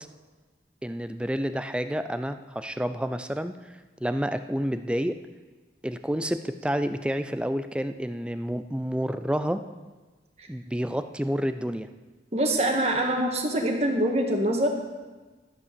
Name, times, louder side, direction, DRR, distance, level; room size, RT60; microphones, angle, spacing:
voice 1, 0.8-3.5 4.0-5.2 5.8-9.6 10.5-11.9, equal, 5° right, 10 dB, 0.4 m, -29 dB
voice 2, 12.3-14.7, right 1 dB, 35° right, 1 dB, 1.7 m, -24 dB
12.5 x 8.4 x 6.9 m, 1.3 s
head